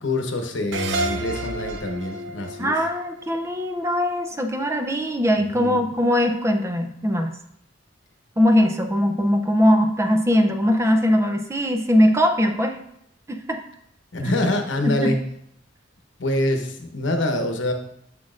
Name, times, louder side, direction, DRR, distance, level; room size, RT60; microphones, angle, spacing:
voice 1, 0.0-2.7 5.6-5.8 14.1-15.2 16.2-17.7, left 1 dB, 75° left, 5 dB, 0.9 m, -25 dB
sound 1, 0.7-4.0, right 1 dB, 75° right, 0.6 m, -30 dB
voice 2, 2.6-7.3 8.4-12.8 13.3-13.6 14.8-15.1, equal, 15° right, 5 dB, 0.5 m, -20 dB
7.2 x 6.2 x 2.5 m, 0.75 s
head